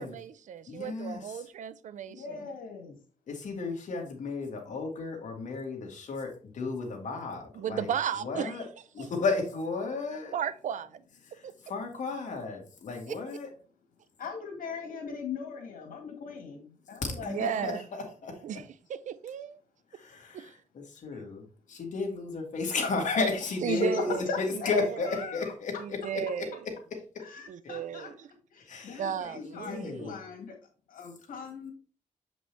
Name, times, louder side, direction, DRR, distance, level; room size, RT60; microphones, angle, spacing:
voice 1, 0.0-2.5 7.5-8.6 9.0-9.1 10.3-11.0 11.4-11.5 13.1-13.2 17.2-17.9 18.4-19.6 20.3-20.5 23.6-24.2 24.5-25.4 25.8-26.7 27.5-28.3 29.0-30.2, right 8 dB, 65° right, 0.5 m, -35 dB
voice 2, 0.7-1.2 3.3-7.9 8.2-8.7 8.9-10.3 11.3-13.5 17.6-18.3 19.9-21.4 21.7-26.5 28.7-29.0 29.7-30.2, left 4 dB, 65° left, 1.9 m, -33 dB
voice 3, 2.1-3.0 14.2-17.6 23.7-24.8 25.0-25.5 27.2-28.1 28.5-30.5 30.9-31.7, left 4 dB, 85° left, 2.0 m, -38 dB
7.3 x 5.1 x 3.4 m
wide cardioid pair, 135°, 14 cm